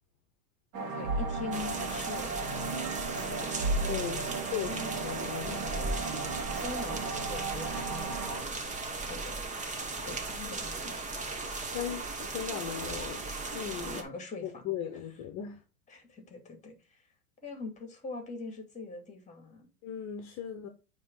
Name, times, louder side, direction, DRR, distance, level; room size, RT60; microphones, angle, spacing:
sound 1, 0.7-8.4, right 3 dB, 50° right, 1.6 m, -35 dB
voice 1, 0.8-2.3 3.1-3.5 3.8-5.2 5.5-8.6 9.1-11.1 11.5-11.6 13.8-14.7 15.9-17.1 17.4-19.7, left 3 dB, 15° left, 2.4 m, -43 dB
sound 2, 1.5-14.0, right 3 dB, 15° right, 1.1 m, -37 dB
voice 2, 3.9-4.3 4.5-5.6 11.6-13.2 13.5-14.0 14.4-15.6 19.8-20.7, left 9 dB, 40° left, 1.1 m, -37 dB
9.2 x 3.3 x 3.8 m
hypercardioid pair, 120°, 43 cm